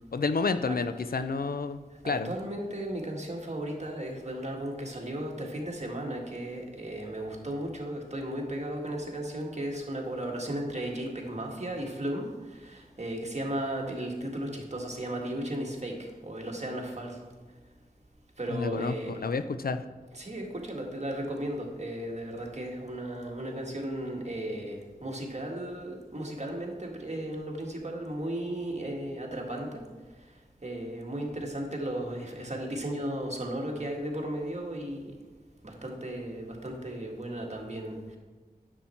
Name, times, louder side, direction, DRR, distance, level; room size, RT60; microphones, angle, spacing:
voice 1, 0.1-2.3 18.5-19.0 19.2-19.8, left 4 dB, 70° left, 10 dB, 0.5 m, -30 dB
voice 2, 1.9-17.2 18.4-19.2 20.1-29.8 30.6-35.2 35.6-38.2, right 1 dB, 45° right, 0 dB, 1.8 m, -35 dB
9.7 x 7.3 x 4.4 m, 1.3 s
wide cardioid pair, 55°, 16 cm